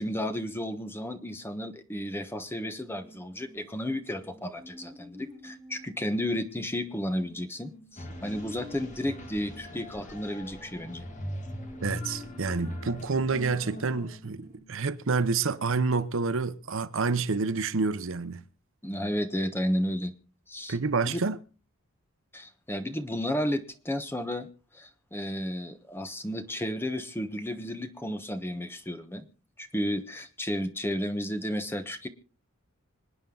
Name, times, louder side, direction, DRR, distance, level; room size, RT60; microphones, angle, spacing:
voice 1, 0.0-11.1 18.8-20.1 20.5-20.8 21.0-21.2 22.3-24.5 24.7-29.3 29.6-32.1, equal, 10° left, 1.2 m, -33 dB
sound 1, 2.5-14.6, equal, 15° right, 3.6 m, -50 dB
sound 2, 8.0-14.2, equal, 35° left, 2.2 m, -41 dB
voice 2, 11.8-18.4 20.7-21.4, right 4 dB, 65° right, 0.8 m, -28 dB
26.0 x 9.1 x 3.9 m
head